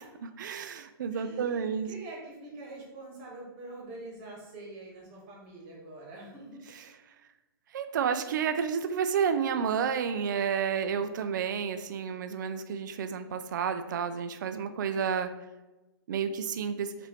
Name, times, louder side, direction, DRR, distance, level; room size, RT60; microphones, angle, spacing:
voice 1, 0.4-1.9 6.7-6.9 7.7-15.3 16.1-16.9, right 7 dB, 50° right, 8 dB, 0.4 m, -30 dB
voice 2, 1.1-6.6, right 2 dB, 25° right, -2 dB, 1.1 m, -45 dB
5.3 x 2.6 x 3.5 m, 1.1 s
hypercardioid pair, 175°, 13 cm